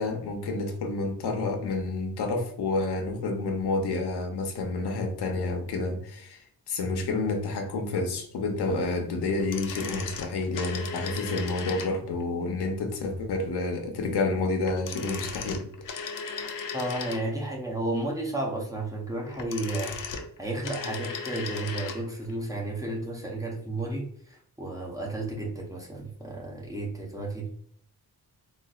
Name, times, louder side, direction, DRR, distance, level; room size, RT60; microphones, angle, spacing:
voice 1, 0.0-6.4 6.7-15.6, left 3 dB, 90° left, 3 dB, 0.8 m, -29 dB
sound 1, 9.4-12.2 14.6-17.5 19.2-22.0 22.3-22.4, left 5 dB, 55° left, 0.5 m, -37 dB
voice 2, 16.7-20.0 20.4-27.5, right 2 dB, 10° right, -2 dB, 0.6 m, -32 dB
4.0 x 2.4 x 2.4 m, 0.68 s
wide cardioid pair, 145°, 38 cm